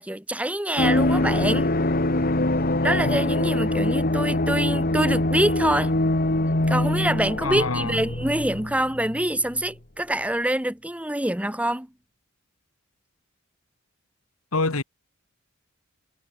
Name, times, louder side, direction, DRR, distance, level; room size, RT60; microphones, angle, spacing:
voice 1, 0.0-1.7 2.8-5.9 6.7-11.9, right 1 dB, 5° right, 2.0 m, -25 dB
sound 1, 0.8-9.3 9.5-9.6, left 1 dB, 45° left, 2.5 m, -24 dB
voice 2, 7.4-8.0 14.5-14.8, left 3 dB, 85° left, 2.2 m, -25 dB
head